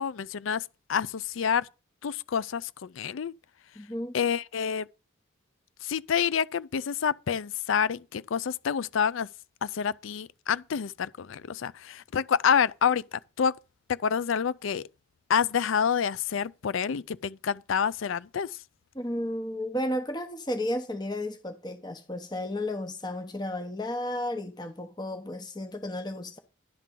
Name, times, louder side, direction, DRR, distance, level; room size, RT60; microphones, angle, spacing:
voice 1, 0.0-1.7 2.0-3.3 4.1-4.9 5.8-9.3 9.6-13.5 13.9-14.9 15.3-18.6, left 7 dB, 80° left, 0.4 m, -28 dB
voice 2, 3.8-4.2 18.9-26.4, left 1 dB, 20° left, 1.0 m, -33 dB
11.5 x 3.8 x 7.4 m
head